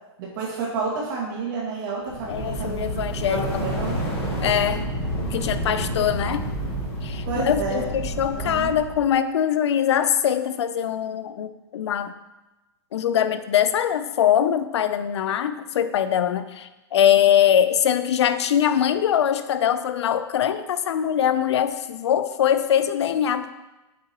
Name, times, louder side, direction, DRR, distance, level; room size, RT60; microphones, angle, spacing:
voice 1, 0.2-4.0 6.2-6.3 7.3-7.9 8.4-8.7, right 4 dB, 45° right, -4 dB, 2.1 m, -30 dB
sound 1, 2.1-9.1, right 1 dB, 20° left, 2.4 m, -29 dB
voice 2, 2.3-3.5 4.4-4.9 5.2-6.5 7.0-12.1 12.9-23.5, left 9 dB, 75° left, 12 dB, 0.5 m, -22 dB
8.0 x 5.3 x 3.0 m, 1.1 s
hypercardioid pair, 165°, 15 cm